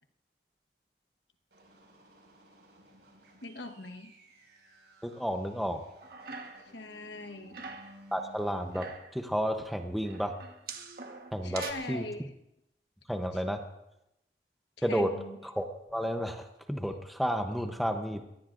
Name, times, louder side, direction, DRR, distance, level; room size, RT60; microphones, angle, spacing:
sound 1, 1.5-8.9, equal, 75° right, 5.6 m, -57 dB
voice 1, 3.4-4.2 6.6-7.6 11.4-12.3 13.3-13.4 14.8-15.4, left 2 dB, 80° left, 6 dB, 1.2 m, -41 dB
voice 2, 5.0-5.8 8.1-8.9 9.1-10.4 11.3-11.6 11.9-12.0 13.1-13.6 14.8-15.1 15.4-18.2, equal, ahead, 5 dB, 0.8 m, -31 dB
sound 2, 5.9-6.8 7.1-8.0 8.5-9.2 10.0-11.7, right 4 dB, 55° right, 1.4 m, -44 dB
23.0 x 18.0 x 2.6 m, 0.84 s
head